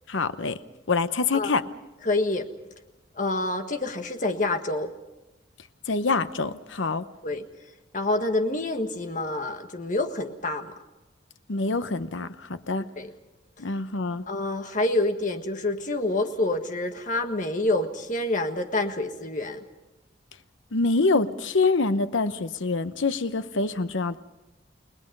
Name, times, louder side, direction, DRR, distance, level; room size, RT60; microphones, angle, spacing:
voice 1, 0.1-0.6 0.9-1.6 5.9-7.0 11.5-12.8 13.6-14.2 20.7-24.2, left 3 dB, 85° left, 12 dB, 0.9 m, -25 dB
voice 2, 2.0-2.5 3.2-4.9 7.2-7.5 7.9-10.7 12.8-13.1 14.3-19.6, left 2 dB, 40° left, 6 dB, 1.6 m, -27 dB
30.0 x 20.0 x 5.4 m, 0.99 s
head